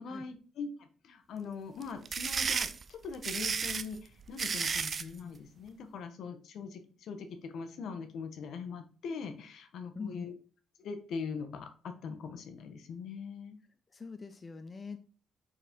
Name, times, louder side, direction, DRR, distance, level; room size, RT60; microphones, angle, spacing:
voice 1, 0.0-10.3 10.8-13.6, left 5 dB, 70° left, 8 dB, 1.1 m, -42 dB
sound 1, 1.8-5.1, right 6 dB, 45° right, 0.4 m, -33 dB
voice 2, 10.0-10.3 13.9-15.0, left 4 dB, 30° left, 8 dB, 0.6 m, -43 dB
5.1 x 4.1 x 5.1 m, 0.39 s
cardioid pair, 90°, 0 cm